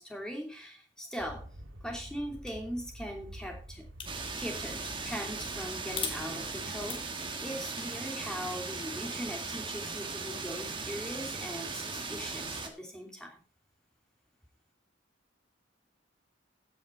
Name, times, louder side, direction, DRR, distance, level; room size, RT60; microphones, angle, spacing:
voice 1, 0.0-1.4 1.8-3.9 4.3-13.4, equal, 5° left, 1 dB, 3.0 m, -40 dB
Aircraft, 1.2-7.5, equal, 85° right, 2.5 m, -49 dB
sound 1, 2.4-2.6 4.0-4.6 5.9-6.2 6.7-8.9, left 6 dB, 25° left, 1.8 m, -41 dB
sound 2, 4.1-12.7, right 4 dB, 25° right, 1.5 m, -38 dB
15.5 x 6.5 x 4.6 m, 0.36 s
head